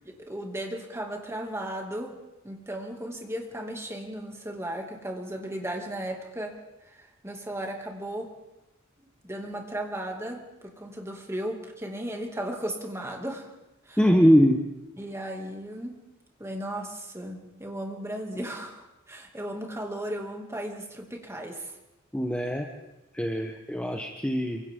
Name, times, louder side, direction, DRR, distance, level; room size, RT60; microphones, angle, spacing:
voice 1, 0.0-2.1 2.4-6.5 6.8-8.3 9.0-13.5 13.8-14.0 15.0-16.0 16.4-21.8, right 1 dB, 15° right, 1 dB, 2.5 m, -36 dB
voice 2, 14.0-14.6 22.1-22.7 23.1-24.6, equal, 5° left, 2 dB, 1.2 m, -22 dB
27.5 x 25.0 x 3.8 m, 0.96 s
head